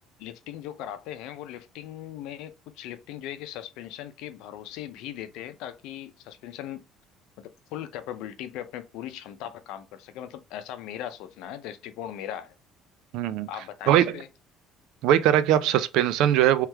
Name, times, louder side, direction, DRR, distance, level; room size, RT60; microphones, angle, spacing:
voice 1, 0.2-6.8 7.4-12.5 13.5-14.3, left 11 dB, 75° left, 0.6 m, -39 dB
voice 2, 13.1-13.5 13.9-14.1 15.0-16.7, right 11 dB, 70° right, 0.4 m, -21 dB
3.2 x 3.2 x 3.4 m
cardioid pair, 170°, 0 cm